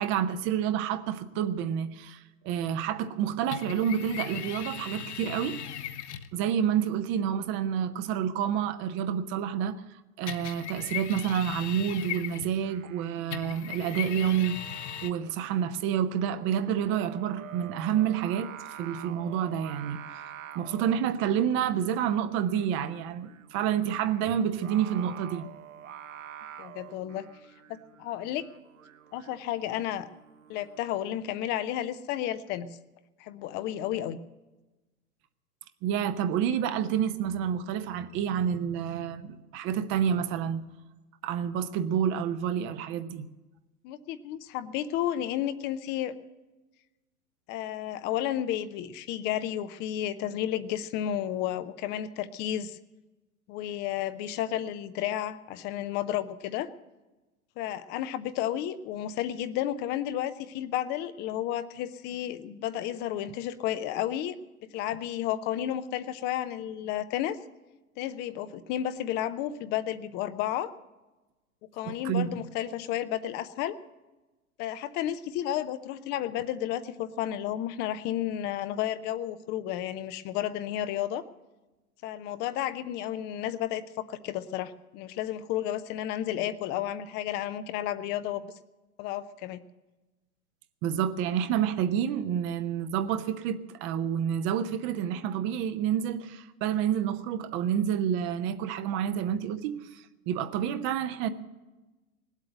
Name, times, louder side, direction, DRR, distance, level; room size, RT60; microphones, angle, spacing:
voice 1, 0.0-5.6 6.3-9.7 10.2-20.0 20.5-25.4 35.8-40.6 41.2-43.2 71.8-72.4 90.8-101.3, right 9 dB, 25° right, 0.8 m, -29 dB
sound 1, 3.5-6.3 10.3-12.7 13.3-15.1, left 10 dB, 50° left, 1.0 m, -38 dB
Singing, 12.5-31.0, right 10 dB, 60° right, 0.9 m, -48 dB
voice 2, 26.6-27.2 27.7-28.5 29.1-30.1 30.5-32.7 33.2-34.2 43.8-46.2 47.5-52.8 53.5-56.7 57.6-64.4 64.7-67.4 68.0-70.7 71.7-73.8 74.6-81.2 82.0-88.5 89.0-89.6, left 11 dB, 25° left, 0.6 m, -32 dB
19.5 x 8.2 x 7.8 m
figure-of-eight pair, 100°, 44 cm